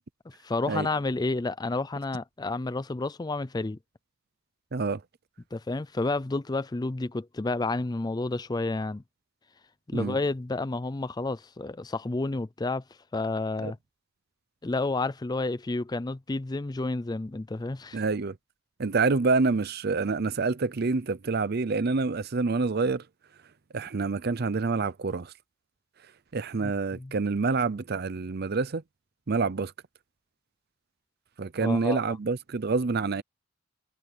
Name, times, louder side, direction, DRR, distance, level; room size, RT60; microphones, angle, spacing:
voice 1, 0.3-3.8 5.5-9.0 9.9-12.8 13.1-13.8 14.6-18.0 26.6-27.1 31.6-32.0, left 2 dB, 20° left, 0.4 m, -30 dB
voice 2, 4.7-5.0 9.9-10.2 13.6-13.7 17.9-18.4 18.8-23.1 23.7-25.3 26.3-28.8 29.3-29.7 31.4-33.2, right 4 dB, 50° right, 0.6 m, -27 dB
head